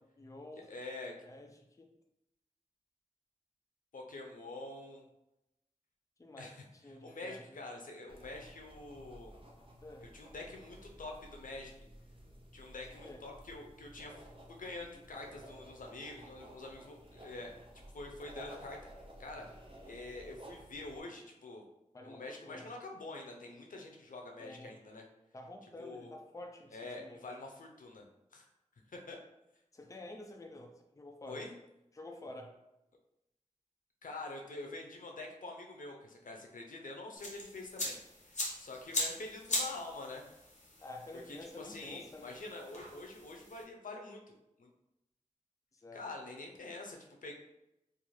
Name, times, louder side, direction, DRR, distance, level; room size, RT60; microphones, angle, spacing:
voice 1, 0.2-0.7 1.2-1.9 6.2-6.5 6.8-7.6 9.8-10.1 13.0-13.2 21.9-22.7 24.4-24.7 25.3-27.4 29.7-31.4 31.9-32.6 40.8-42.4 45.8-46.0, left 1 dB, 25° left, 4 dB, 0.3 m, -49 dB
voice 2, 0.7-1.1 3.9-5.0 6.4-9.4 10.0-11.7 12.5-14.2 14.5-17.5 17.9-19.5 19.8-21.6 22.0-25.1 25.8-26.2 26.7-28.1 28.3-28.5 28.9-29.2 31.3-31.5 34.0-38.0 38.6-40.3 41.1-44.7 45.9-47.3, left 2 dB, 85° left, 1 dB, 0.4 m, -46 dB
sound 1, 8.1-21.0, right 1 dB, 40° right, 0.5 m, -54 dB
sound 2, 37.2-43.6, left 1 dB, 60° left, 0.8 m, -40 dB
2.4 x 2.3 x 3.1 m, 0.88 s
wide cardioid pair, 55°, 14 cm